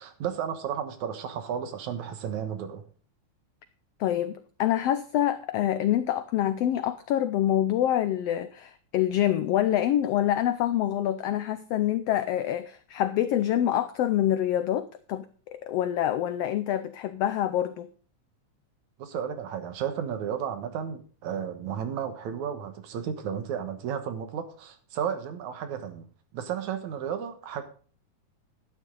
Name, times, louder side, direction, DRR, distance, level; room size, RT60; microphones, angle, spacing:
voice 1, 0.0-2.8 19.0-26.1 26.3-27.6, right 8 dB, 75° right, 2.6 m, -33 dB
voice 2, 4.0-17.9, left 11 dB, 85° left, 1.4 m, -26 dB
12.0 x 11.0 x 3.9 m
omnidirectional pair, 3.5 m